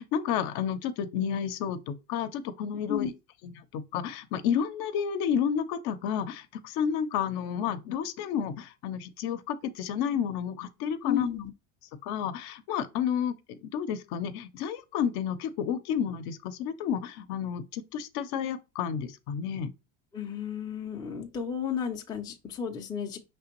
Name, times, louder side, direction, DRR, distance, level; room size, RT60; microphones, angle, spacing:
voice 1, 0.0-3.1 3.4-11.3 12.0-19.7, left 8 dB, 60° left, 0.7 m, -31 dB
voice 2, 11.0-11.5 20.1-23.2, left 8 dB, 10° left, 0.4 m, -32 dB
5.0 x 3.3 x 2.9 m
supercardioid pair, 130°, 45 cm